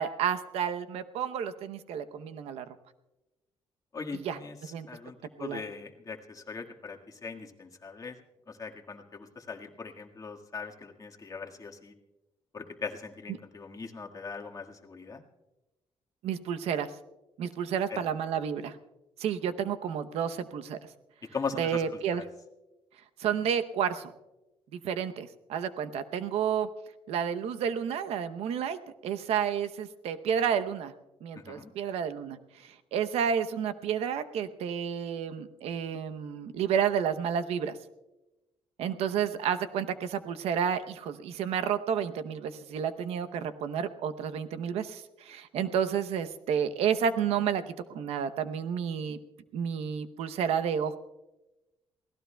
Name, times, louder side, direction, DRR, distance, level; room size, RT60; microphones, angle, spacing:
voice 1, 0.0-2.6 4.2-4.4 4.7-4.9 5.4-5.6 16.2-16.9 17.4-18.8 19.2-20.8 21.6-22.2 23.2-24.1 24.7-26.7 27.1-30.9 31.2-37.8 38.8-49.2 49.5-51.0, right 8 dB, 85° right, 10 dB, 0.8 m, -31 dB
voice 2, 3.9-8.2 8.5-11.9 12.5-15.2 17.9-18.0 21.3-22.2 31.3-31.7, left 5 dB, 35° left, 1 dB, 1.7 m, -40 dB
28.5 x 17.0 x 2.3 m, 1.0 s
cardioid pair, 90°, 10 cm